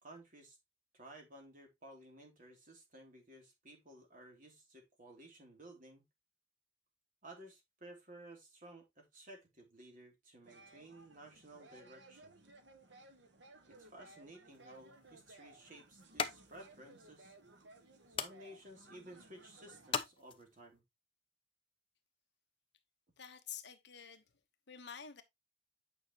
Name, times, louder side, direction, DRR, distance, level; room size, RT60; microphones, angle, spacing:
voice 1, 0.0-0.6 0.9-6.0 7.2-12.4 13.7-17.3 18.1-20.8, right 1 dB, 45° right, 3.1 m, -56 dB
sound 1, 10.4-19.9, right 2 dB, 65° right, 1.5 m, -60 dB
sound 2, 14.5-20.8, left 6 dB, 30° left, 0.8 m, -45 dB
voice 2, 23.2-24.2 24.7-25.2, left 8 dB, 60° left, 1.1 m, -49 dB
9.1 x 5.6 x 3.0 m
head